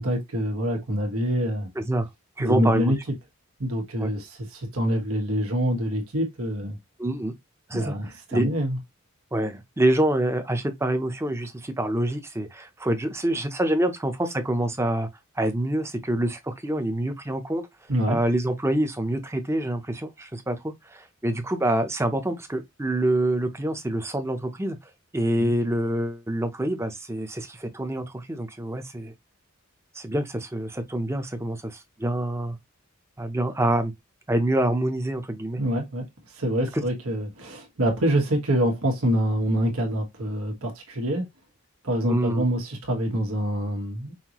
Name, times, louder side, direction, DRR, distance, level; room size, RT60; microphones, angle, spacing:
voice 1, 0.0-1.7 2.4-3.0 3.6-6.8 7.7-8.8 17.9-18.2 25.4-25.5 35.6-36.1 36.3-41.2 41.8-44.1, equal, 85° right, 1.5 m, -26 dB
voice 2, 1.8-2.1 2.4-2.9 4.0-4.1 7.0-7.3 7.7-8.5 9.3-15.1 15.4-17.6 18.1-24.8 25.1-29.1 29.9-32.6 33.2-33.9 34.3-35.6 36.7-36.8 42.1-42.4, right 1 dB, 10° right, 0.7 m, -26 dB
5.7 x 2.6 x 3.0 m
head